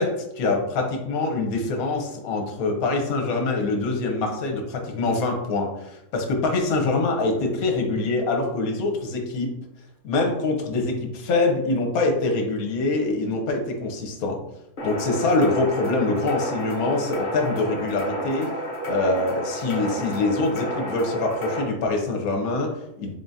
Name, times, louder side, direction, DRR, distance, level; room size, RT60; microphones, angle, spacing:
voice 1, 0.4-9.5 10.0-14.4 14.8-18.5 18.8-23.1, left 3 dB, 70° left, 2 dB, 1.2 m, -24 dB
sound 1, 14.8-21.6, equal, 40° left, 0.8 m, -31 dB
3.6 x 3.5 x 2.7 m, 0.84 s
omnidirectional pair, 1.7 m